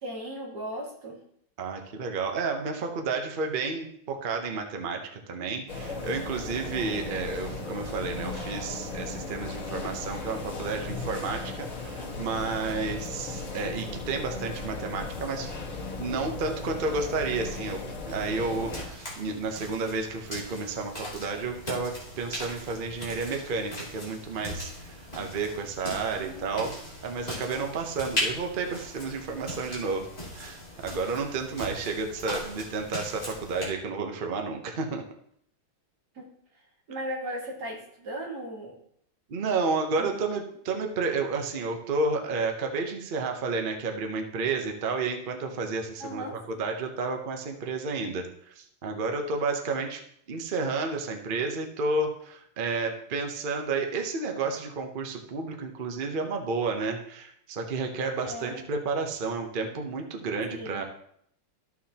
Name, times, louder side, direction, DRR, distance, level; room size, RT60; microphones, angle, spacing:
voice 1, 0.0-1.2 26.2-26.8 36.2-36.3 36.9-38.7 40.0-40.2 46.0-46.4 58.2-58.6 60.5-60.8, equal, 50° right, -2 dB, 2.4 m, -37 dB
voice 2, 1.6-15.5 16.0-17.8 18.1-21.9 22.2-26.7 27.0-30.1 30.3-35.0 39.3-50.0 50.3-60.8, right 4 dB, 75° right, 4 dB, 0.4 m, -31 dB
sound 1, 5.7-18.9, left 3 dB, 80° left, 2.6 m, -36 dB
sound 2, 18.5-33.7, left 1 dB, 20° left, 2.3 m, -38 dB
13.5 x 6.3 x 2.9 m, 0.70 s
omnidirectional pair, 2.3 m